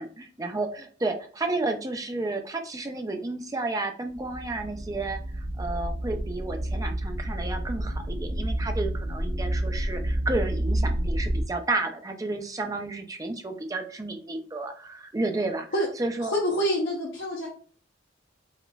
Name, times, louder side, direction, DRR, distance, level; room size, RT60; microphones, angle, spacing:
voice 1, 0.0-15.7 16.0-16.3, right 2 dB, 20° right, 5 dB, 0.4 m, -31 dB
sound 1, 4.1-11.4, right 1 dB, 50° right, 0.9 m, -29 dB
voice 2, 16.2-17.5, equal, 70° left, -4 dB, 0.7 m, -26 dB
4.9 x 2.5 x 2.2 m, 0.44 s
head